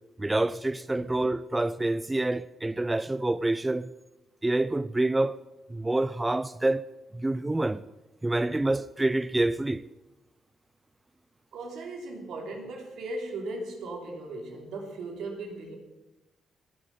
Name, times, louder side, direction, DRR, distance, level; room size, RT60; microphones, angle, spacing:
voice 1, 0.2-3.9 4.4-5.4 5.7-6.8 7.1-7.8 8.2-9.8, right 2 dB, 15° right, 0.4 m, -27 dB
voice 2, 11.5-15.8, right 2 dB, 75° right, 3.4 m, -37 dB
21.5 x 7.8 x 5.7 m
cardioid pair, 90°, 0 cm